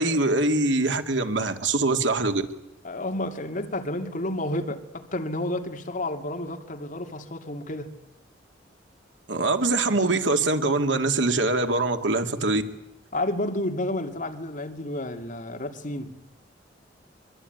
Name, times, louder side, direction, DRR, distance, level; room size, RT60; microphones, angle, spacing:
voice 1, 0.0-2.4 9.3-12.6, right 2 dB, 75° right, 2.4 m, -23 dB
voice 2, 2.8-7.9 13.1-16.2, left 1 dB, 45° left, 2.7 m, -31 dB
24.0 x 23.5 x 9.4 m
head